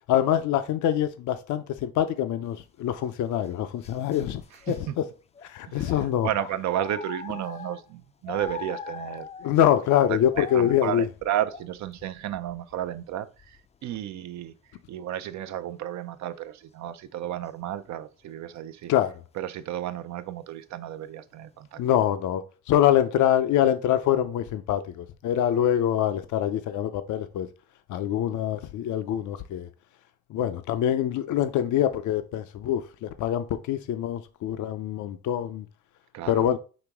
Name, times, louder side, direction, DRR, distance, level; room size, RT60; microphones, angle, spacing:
voice 1, 0.1-4.4 4.7-5.1 5.4-6.3 9.4-11.0 18.9-19.1 21.8-27.5 27.9-29.7 30.3-35.7 36.3-36.6, left 11 dB, 75° left, 0.6 m, -25 dB
sound 1, 3.2-4.8 5.3-5.5 5.8-6.0 6.3-7.9 8.3-9.6 10.1-13.1 13.4-13.8 15.4-15.5, left 5 dB, 20° left, 0.4 m, -41 dB
voice 2, 6.2-9.3 10.1-14.5 14.9-18.9 19.4-21.8 36.1-36.5, right 11 dB, 65° right, 0.6 m, -33 dB
5.1 x 3.0 x 3.5 m
cardioid pair, 90°, 30 cm